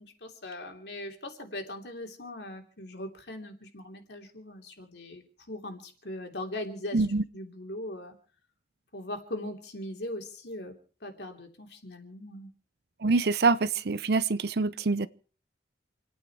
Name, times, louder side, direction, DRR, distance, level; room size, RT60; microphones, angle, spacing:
voice 1, 0.0-7.1 7.3-8.1 8.9-10.8 11.0-12.5, left 1 dB, 70° left, 3.0 m, -40 dB
voice 2, 6.9-7.2 13.0-15.1, right 3 dB, 60° right, 0.7 m, -25 dB
28.5 x 9.5 x 4.7 m
head